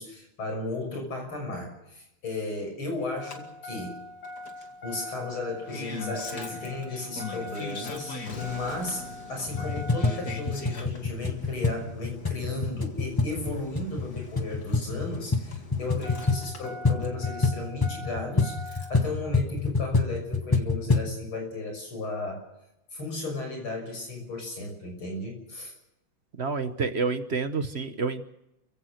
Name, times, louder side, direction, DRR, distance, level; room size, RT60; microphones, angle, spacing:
voice 1, 0.0-4.0 4.8-9.0 9.3-22.4 22.9-25.7, left 2 dB, 90° left, 4 dB, 7.0 m, -35 dB
Engine starting, 3.2-19.1 20.3-20.4, left 3 dB, 50° left, 2.7 m, -40 dB
sound 1, 9.5-21.1, left 3 dB, 15° left, 1.1 m, -27 dB
voice 2, 26.4-28.2, right 4 dB, 40° right, 10 dB, 1.0 m, -28 dB
29.5 x 16.0 x 6.5 m, 0.87 s
omnidirectional pair, 2.2 m